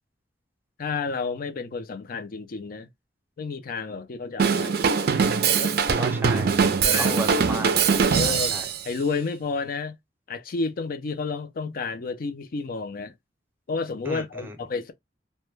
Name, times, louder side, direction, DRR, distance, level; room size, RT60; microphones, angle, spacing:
voice 1, 0.8-2.9 3.4-4.8 5.6-5.8 6.8-7.2 8.1-8.6 8.8-10.0 10.3-13.1 13.7-14.9, left 4 dB, 50° left, 0.4 m, -31 dB
Drum kit / Drum, 4.4-8.8, right 6 dB, 55° right, 0.4 m, -22 dB
voice 2, 6.0-6.7 7.0-7.8 8.2-8.6 14.1-14.5, right 1 dB, 10° right, 0.6 m, -34 dB
2.2 x 2.1 x 3.1 m
head